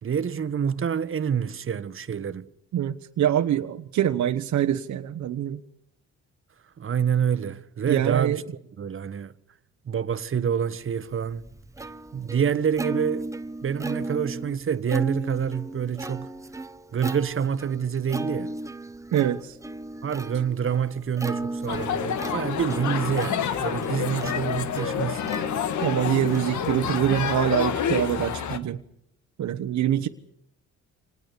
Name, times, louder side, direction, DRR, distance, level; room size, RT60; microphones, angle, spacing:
voice 1, 0.0-2.5 6.8-8.4 8.8-9.3 9.9-11.5 12.1-13.3 13.6-16.3 16.9-18.5 20.0-25.3, right 7 dB, 45° right, 1.4 m, -27 dB
voice 2, 2.7-5.6 7.9-8.4 19.1-19.6 25.8-28.8 29.4-30.1, right 10 dB, 65° right, 1.2 m, -24 dB
Plucked string instrument, 10.9-27.6, right 2 dB, 10° right, 1.2 m, -36 dB
sound 1, 21.7-28.6, left 8 dB, 75° left, 1.8 m, -28 dB
26.5 x 19.5 x 6.9 m
cardioid pair, 90°, 30 cm